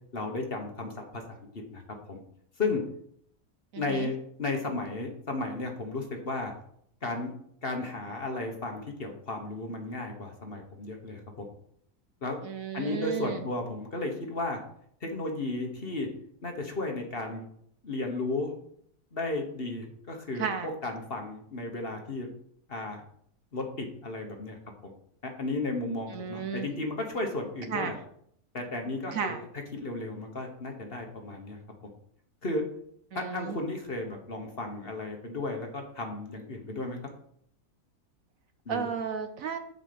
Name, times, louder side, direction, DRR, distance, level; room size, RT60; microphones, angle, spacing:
voice 1, 0.1-1.8 2.1-2.2 2.6-2.8 3.8-6.5 7.0-7.3 7.6-11.4 12.2-12.4 12.7-14.6 15.0-16.1 16.4-17.4 17.8-18.5 19.1-20.5 20.8-22.3 22.7-23.0 23.5-24.6 25.2-27.9 28.5-29.3 29.7-31.6 32.4-32.6 33.1-37.0 38.6-38.9, left 2 dB, 40° left, 3 dB, 1.4 m, -34 dB
voice 2, 3.7-4.1 12.4-13.4 20.4-20.7 26.1-26.7 27.7-28.0 29.1-29.4 33.1-33.6 38.7-39.6, right 6 dB, 65° right, 8 dB, 1.1 m, -33 dB
8.0 x 4.9 x 6.9 m, 0.67 s
omnidirectional pair, 1.7 m